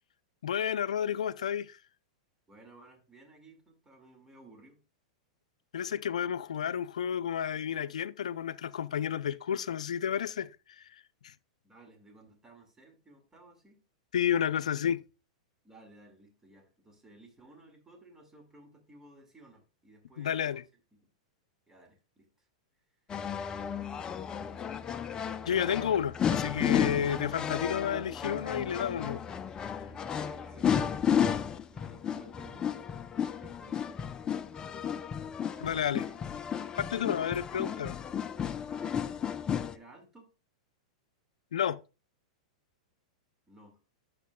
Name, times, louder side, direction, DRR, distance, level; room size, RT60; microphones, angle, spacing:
voice 1, 0.4-1.8 5.7-10.5 10.8-10.9 11.2-11.3 14.1-15.0 20.2-20.6 25.5-29.2 35.6-36.0 36.8-38.0 41.5-41.8, left 9 dB, 80° left, 0.4 m, -31 dB
voice 2, 2.5-4.8 11.6-13.8 15.6-20.6 20.9-21.0 21.7-22.5 23.3-24.6 29.8-32.8 33.4-34.1 35.5-36.2 39.7-40.3 43.5-43.8, right 2 dB, 15° right, 2.0 m, -57 dB
sound 1, 23.1-39.7, left 8 dB, 20° left, 0.5 m, -33 dB
11.0 x 6.7 x 2.3 m
hypercardioid pair, 115°, 4 cm